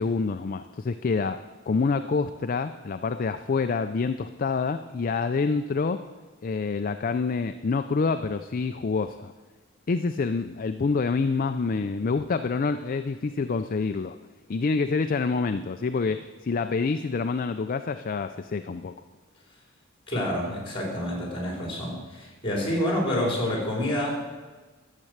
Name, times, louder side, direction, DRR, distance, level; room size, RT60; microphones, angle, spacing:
voice 1, 0.0-1.4 1.7-6.0 6.4-9.3 9.9-14.2 14.5-18.9, left 4 dB, 45° left, 9 dB, 0.4 m, -27 dB
voice 2, 20.1-24.2, left 1 dB, 25° left, -1 dB, 4.1 m, -28 dB
12.0 x 7.5 x 8.0 m, 1.3 s
head